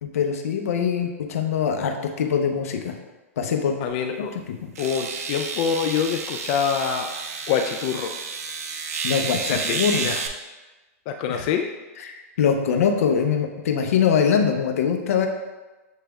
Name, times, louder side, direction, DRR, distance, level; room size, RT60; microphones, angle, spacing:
voice 1, 0.0-2.9 3.4-3.8 4.2-4.5 9.0-10.1 11.3-11.4 12.0-15.3, left 7 dB, 70° left, 4 dB, 0.7 m, -23 dB
voice 2, 3.8-4.3 4.8-7.1 7.5-8.1 9.5-10.2 11.1-11.7, left 7 dB, 40° left, 5 dB, 0.3 m, -25 dB
sound 1, 3.9-4.0 4.7-10.3, right 5 dB, 75° right, 0.6 m, -30 dB
7.2 x 3.3 x 2.3 m, 1.2 s
hypercardioid pair, 130°, 8 cm